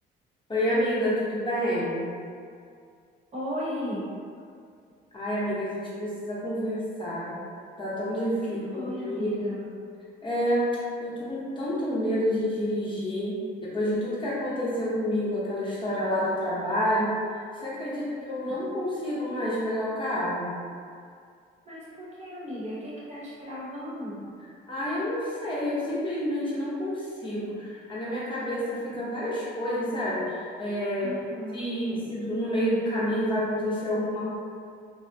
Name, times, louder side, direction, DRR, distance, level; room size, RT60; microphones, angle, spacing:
voice 1, 0.5-2.1 5.1-7.4 7.8-9.3 10.2-10.7 11.0-13.4 13.6-17.1 17.6-20.6 24.7-31.1 31.5-34.2, equal, 25° left, -9 dB, 0.8 m, -28 dB
voice 2, 3.3-4.0 8.7-9.7 17.9-18.6 21.7-24.3 31.0-32.2, equal, 35° right, -8 dB, 0.9 m, -36 dB
2.6 x 2.0 x 2.7 m, 2.2 s
cardioid pair, 90°, 20 cm